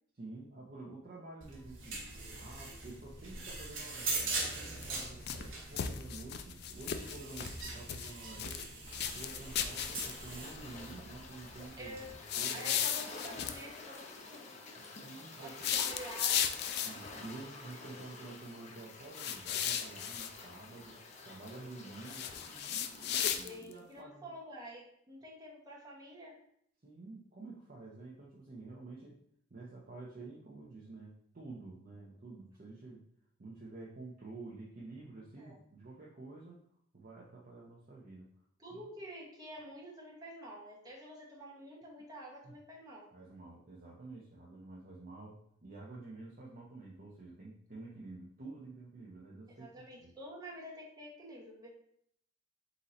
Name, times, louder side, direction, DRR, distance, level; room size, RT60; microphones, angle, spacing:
voice 1, 0.1-2.0 2.3-8.7 9.0-12.0 12.4-12.9 13.2-13.6 14.7-15.7 16.8-24.3 26.8-29.2 29.5-33.0 33.4-36.6 36.9-38.3 38.7-38.8 42.4-42.5 43.1-50.2, right 3 dB, 45° right, -5 dB, 0.7 m, -50 dB
sound 1, 1.4-12.1, right 3 dB, 90° right, 1.0 m, -42 dB
sound 2, 4.8-5.5 5.8-7.6 7.9-8.7 8.9-10.4 12.3-13.6 15.5-17.1 19.1-20.3 22.1-23.7, left 9 dB, 55° left, 0.4 m, -35 dB
sound 3, 8.9-23.6, left 3 dB, 35° left, 0.7 m, -49 dB
voice 2, 12.5-14.5 15.4-16.7 23.2-26.4 35.4-35.6 38.6-43.1 47.8-48.0 49.5-51.7, equal, 20° right, -4 dB, 1.0 m, -49 dB
3.8 x 2.7 x 4.2 m, 0.68 s
head